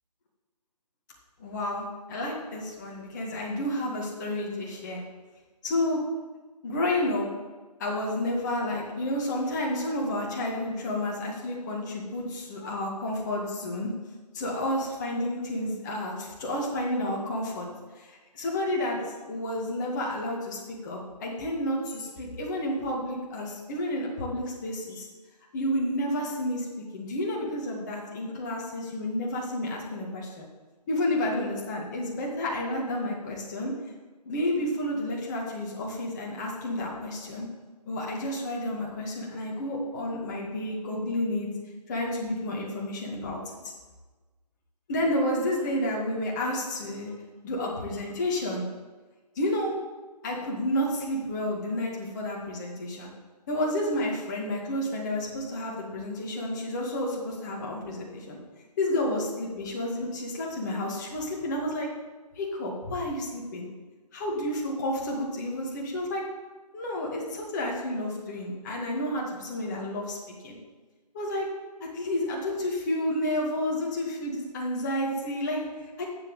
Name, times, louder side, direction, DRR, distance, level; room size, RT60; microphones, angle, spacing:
voice 1, 1.4-5.0 5.6-6.0 6.6-7.3 7.8-13.9 14.3-17.7 18.0-19.0 19.2-25.1 25.5-26.7 26.9-30.5 30.9-33.7 34.3-37.5 37.9-41.5 41.9-43.6 44.9-47.1 47.4-48.7 49.4-49.7 50.2-53.1 53.5-58.4 58.8-61.9 62.4-63.7 64.1-66.2 66.7-70.2 70.4-70.5 71.1-71.5 71.8-76.0, left 1 dB, 25° left, -3 dB, 2.2 m, -30 dB
7.5 x 6.6 x 8.1 m, 1.3 s
figure-of-eight pair, 155°, 21 cm